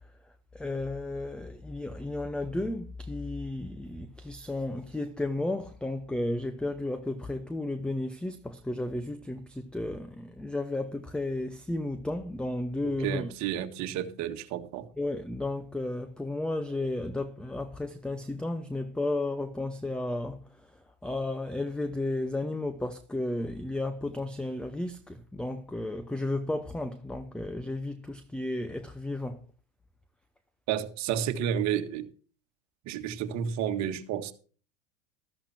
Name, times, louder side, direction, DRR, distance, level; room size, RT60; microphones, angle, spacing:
voice 1, 0.5-13.3 15.0-29.4, left 2 dB, ahead, 0.7 m, -33 dB
voice 2, 13.0-14.9 30.7-32.1 32.9-34.3, right 9 dB, 45° right, 1.8 m, -31 dB
13.5 x 13.0 x 2.8 m
hypercardioid pair, 105°, 38 cm